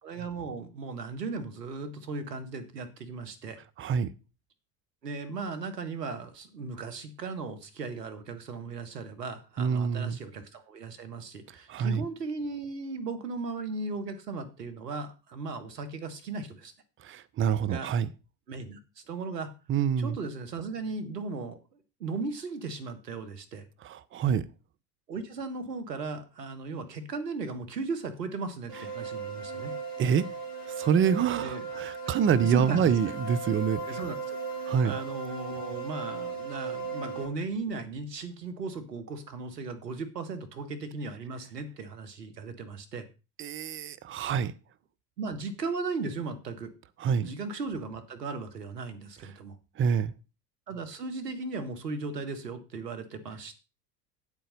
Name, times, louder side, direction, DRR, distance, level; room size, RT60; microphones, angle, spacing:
voice 1, 0.0-3.6 5.0-16.7 17.7-17.9 18.5-19.5 20.0-21.6 22.0-23.7 25.1-29.7 31.4-31.7 32.0-32.1 32.4-32.9 33.9-34.4 34.6-43.1 45.2-46.7 47.2-49.6 50.7-53.5, right 3 dB, 75° right, 1.8 m, -37 dB
voice 2, 3.8-4.1 9.6-10.2 11.7-12.0 17.0-18.1 19.7-20.2 23.8-24.5 30.0-30.3 30.8-33.8 34.7-34.9 43.4-44.5 47.0-47.3 49.8-50.1, right 7 dB, 25° right, 0.8 m, -26 dB
sound 1, 28.7-37.2, right 4 dB, 50° right, 6.4 m, -37 dB
9.2 x 8.2 x 5.3 m
figure-of-eight pair, 70°, 48 cm